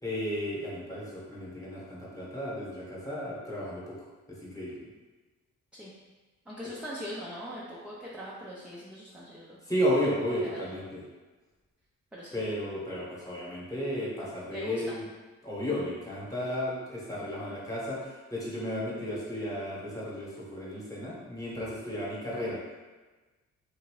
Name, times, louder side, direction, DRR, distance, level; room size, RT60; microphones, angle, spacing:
voice 1, 0.0-4.0 4.3-4.8 6.6-6.8 9.7-11.0 12.3-15.0 15.4-22.6, equal, 10° left, -6 dB, 1.1 m, -33 dB
voice 2, 6.5-9.6 10.4-10.7 12.1-12.4 14.5-15.0, equal, 5° right, -7 dB, 0.5 m, -41 dB
2.7 x 2.7 x 3.0 m, 1.2 s
cardioid pair, 90°, 30 cm